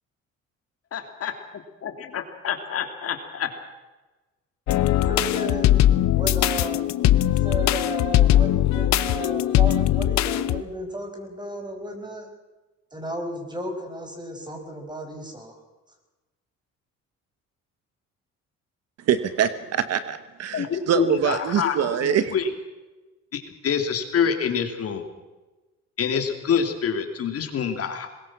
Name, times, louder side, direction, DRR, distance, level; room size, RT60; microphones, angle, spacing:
voice 1, 0.9-1.3 1.8-3.5 20.5-22.4 23.3-25.0 26.0-28.1, left 7 dB, 55° left, 6 dB, 2.9 m, -26 dB
sound 1, 4.7-10.6, left 13 dB, 70° left, 0.9 m, -20 dB
voice 2, 5.0-5.7 6.1-6.9 7.2-12.3 12.9-15.6, right 1 dB, 15° right, 4 dB, 5.5 m, -34 dB
voice 3, 19.1-22.3, right 9 dB, 60° right, 12 dB, 1.2 m, -24 dB
22.5 x 20.5 x 6.1 m, 1.2 s
cardioid pair, 105°, 29 cm